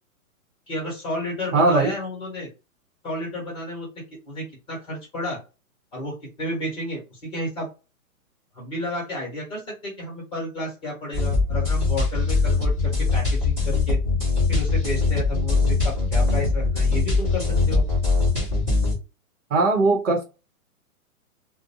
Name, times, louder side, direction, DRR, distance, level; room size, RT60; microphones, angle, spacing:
voice 1, 0.7-2.5 3.0-3.9 4.3-5.4 5.9-7.7 8.5-14.0 14.5-17.8, left 1 dB, 10° left, 1.1 m, -32 dB
voice 2, 1.5-1.9 19.5-20.2, right 3 dB, 60° right, 1.0 m, -19 dB
sound 1, 11.1-18.9, left 3 dB, 5° right, 0.5 m, -22 dB
2.5 x 2.2 x 2.7 m
hypercardioid pair, 155°, 43 cm